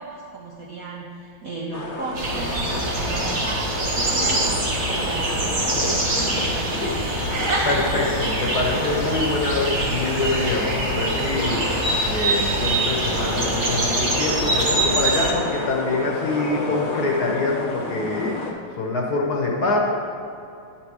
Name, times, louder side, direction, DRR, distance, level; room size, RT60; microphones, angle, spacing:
voice 1, 0.0-7.0, right 3 dB, 75° right, -1 dB, 0.8 m, -35 dB
sound 1, 1.7-18.5, left 2 dB, 80° left, 1.9 m, -30 dB
sound 2, 2.1-15.3, right 2 dB, 45° right, 1.0 m, -24 dB
voice 2, 7.6-11.8 12.1-18.5 18.8-19.8, left 3 dB, 55° left, -1 dB, 1.4 m, -25 dB
10.5 x 4.5 x 4.7 m, 2.6 s
omnidirectional pair, 2.3 m